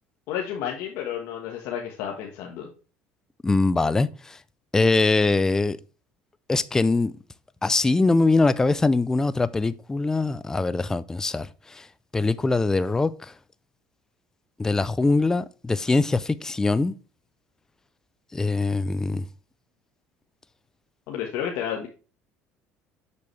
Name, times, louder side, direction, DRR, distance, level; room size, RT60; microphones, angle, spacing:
voice 1, 0.3-2.7 21.1-21.9, left 9 dB, 70° left, 1.3 m, -31 dB
voice 2, 3.4-4.4 4.7-5.8 6.5-7.1 7.6-11.9 12.1-13.3 14.6-16.9 18.3-19.2, left 3 dB, 10° left, 0.4 m, -22 dB
6.8 x 6.8 x 3.2 m
supercardioid pair, 110°, 4 cm